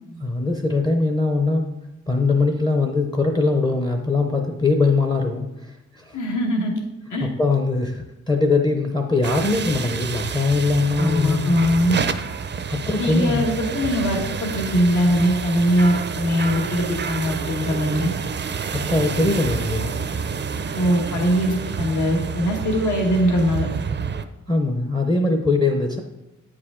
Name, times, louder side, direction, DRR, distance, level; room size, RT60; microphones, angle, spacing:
voice 1, 0.2-1.7 2.1-6.2 7.2-11.5 12.7-13.4 18.7-19.9 24.5-26.0, left 3 dB, 15° left, 3 dB, 0.5 m, -21 dB
voice 2, 6.1-6.7 7.1-7.3 11.0-12.0 13.0-18.1 20.7-23.7, equal, 75° left, 1 dB, 1.3 m, -21 dB
sound 1, 9.2-24.2, right 6 dB, 35° right, 0.4 m, -29 dB
8.8 x 4.9 x 3.6 m, 0.97 s
wide cardioid pair, 145°, 30 cm